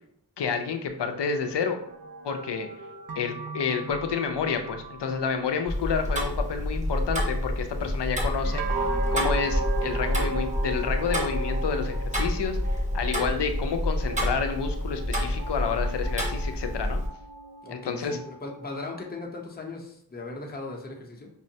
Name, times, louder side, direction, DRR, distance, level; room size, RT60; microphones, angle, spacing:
voice 1, 0.4-1.8 2.2-2.7 3.2-12.6 12.9-17.0 17.7-18.2, left 6 dB, 70° left, 6 dB, 0.6 m, -29 dB
sound 1, 1.0-6.6 8.4-19.2, right 3 dB, 60° right, 0.5 m, -37 dB
Tick-tock, 5.7-17.1, left 1 dB, 15° right, 0.9 m, -28 dB
voice 2, 17.6-21.3, left 3 dB, 20° left, 0 dB, 0.7 m, -38 dB
5.4 x 2.1 x 2.7 m, 0.68 s
wide cardioid pair, 50°, 42 cm